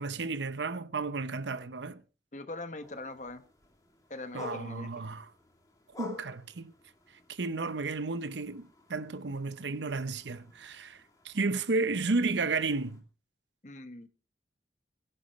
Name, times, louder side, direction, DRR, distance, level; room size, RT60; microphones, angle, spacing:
voice 1, 0.0-2.0 4.3-5.3 6.0-6.7 7.3-13.0, right 3 dB, 90° right, 0.8 m, -33 dB
voice 2, 2.3-3.4 4.1-4.9 13.6-14.1, left 2 dB, 40° left, 1.2 m, -41 dB
sound 1, 2.8-13.0, left 4 dB, 20° left, 2.5 m, -51 dB
21.5 x 11.0 x 3.1 m
head